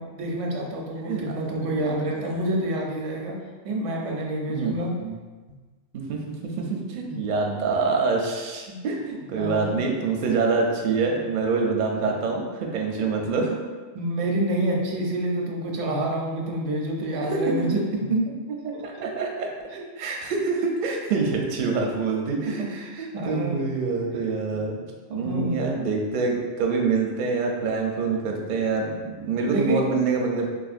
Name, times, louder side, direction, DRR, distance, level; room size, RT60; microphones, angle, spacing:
voice 1, 0.0-3.4 3.6-4.9 6.6-6.8 7.1-7.2 8.7-8.8 9.3-9.8 13.9-18.3 18.7-18.8 19.7-19.8 22.6-23.7 24.5-24.8 25.1-25.6 29.5-29.8, right 1 dB, 90° right, -1 dB, 1.0 m, -28 dB
voice 2, 1.6-2.3 4.5-4.7 5.0-5.2 5.9-6.2 6.6-13.6 17.3-17.7 18.6-19.5 20.0-24.8 25.1-30.5, right 4 dB, 60° right, 0 dB, 0.5 m, -26 dB
3.9 x 2.5 x 2.4 m, 1.4 s
omnidirectional pair, 1.2 m